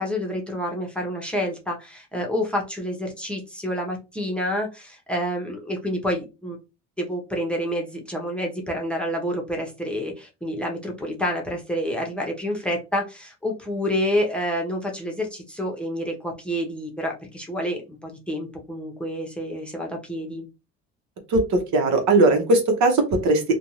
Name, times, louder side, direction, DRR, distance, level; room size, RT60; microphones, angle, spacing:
voice 1, 0.0-6.6 7.0-20.5, equal, 5° left, 0 dB, 0.8 m, -28 dB
voice 2, 21.3-23.4, right 2 dB, 75° right, 4 dB, 0.9 m, -19 dB
2.5 x 2.3 x 3.0 m, 0.27 s
cardioid pair, 105°, 29 cm